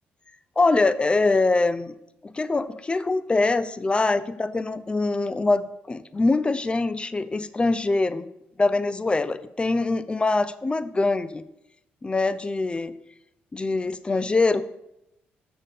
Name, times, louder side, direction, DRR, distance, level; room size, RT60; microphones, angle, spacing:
voice 1, 0.6-1.9 2.2-8.3 8.6-11.4 12.0-12.9 13.5-14.7, left 3 dB, 25° left, 14 dB, 0.5 m, -23 dB
6.8 x 6.4 x 3.9 m, 0.84 s
supercardioid pair, 65°, 4 cm